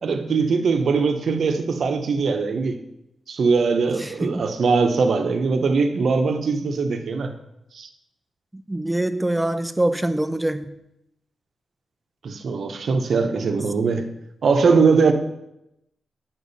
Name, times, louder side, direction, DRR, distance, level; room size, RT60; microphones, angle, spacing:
voice 1, 0.0-2.8 3.3-7.3 7.7-7.9 12.2-14.1 14.4-15.1, right 4 dB, 65° right, 6 dB, 0.9 m, -21 dB
voice 2, 4.0-4.5 8.5-10.7, right 1 dB, 10° right, 10 dB, 0.5 m, -24 dB
8.6 x 6.0 x 4.1 m, 0.85 s
cardioid pair, 100°, 0 cm